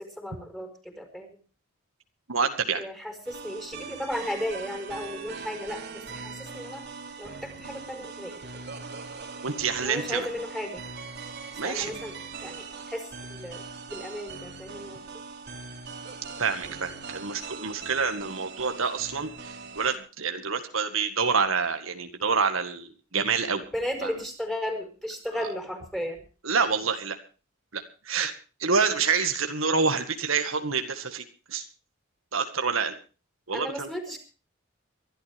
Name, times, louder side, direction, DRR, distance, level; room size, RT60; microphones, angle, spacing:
voice 1, 0.0-1.4 2.8-6.8 7.2-8.5 9.8-10.8 11.6-13.6 13.9-15.0 23.7-26.2 33.5-34.2, equal, ahead, 5 dB, 4.8 m, -35 dB
voice 2, 2.3-2.8 9.4-10.3 11.6-11.9 16.4-23.6 24.0-24.1 25.3-25.5 26.4-27.2 27.7-28.3 28.6-31.6 32.3-33.0 33.5-33.9, right 5 dB, 75° right, 7 dB, 1.9 m, -27 dB
sound 1, 3.3-20.0, right 4 dB, 55° right, 2.8 m, -41 dB
23.5 x 12.5 x 3.5 m, 0.36 s
head